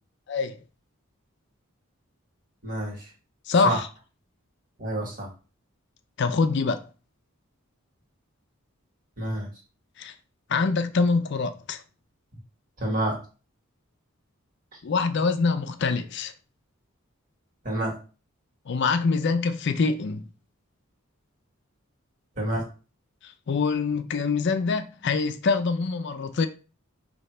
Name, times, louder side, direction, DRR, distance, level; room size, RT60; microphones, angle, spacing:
voice 1, 2.6-3.1 3.6-3.8 4.8-5.3 9.2-9.5 12.8-13.2 17.6-18.0 22.4-22.7, right 1 dB, 40° right, 1.6 m, -28 dB
voice 2, 3.5-3.9 6.2-6.8 10.0-10.1 10.5-11.8 14.8-16.3 18.7-20.3 23.2-26.5, left 4 dB, 55° left, 0.4 m, -25 dB
5.3 x 2.8 x 3.2 m
head